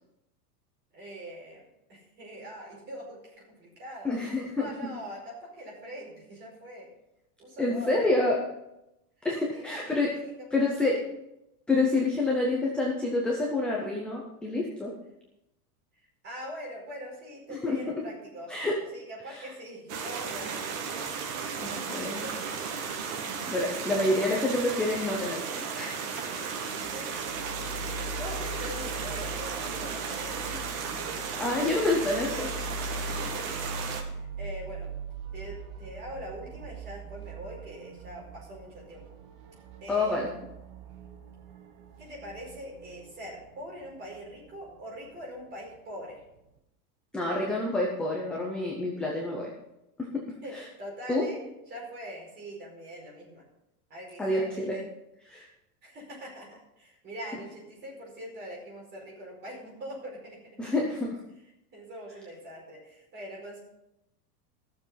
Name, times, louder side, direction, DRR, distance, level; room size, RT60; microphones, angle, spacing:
voice 1, 0.9-1.6 1.9-6.9 7.4-8.1 9.2-10.3 10.9-11.0 15.9-18.5 18.9-20.6 21.5-22.6 26.7-27.4 27.8-30.6 31.5-31.6 33.1-34.9 35.3-39.1 39.8-40.3 42.0-46.2 50.4-51.4 51.7-53.4 53.9-54.8 55.8-60.4 61.7-63.6, equal, 20° right, -3 dB, 5.0 m, -43 dB
voice 2, 4.0-4.7 7.6-8.4 9.2-10.1 10.5-11.0 11.7-14.9 17.5-17.8 18.5-18.7 19.4-19.5 21.6-22.3 23.5-25.4 25.7-26.2 31.3-32.5 39.9-40.3 47.1-49.5 50.0-50.2 50.5-50.6 51.1-51.2 54.2-54.8 55.3-55.5 60.6-61.2, left 2 dB, ahead, -2 dB, 0.4 m, -28 dB
sound 1, 19.9-34.0, right 6 dB, 60° right, 2.2 m, -35 dB
sound 2, 26.8-46.6, right 2 dB, 40° right, 1.2 m, -42 dB
15.0 x 7.0 x 5.6 m, 0.87 s
supercardioid pair, 170°, 46 cm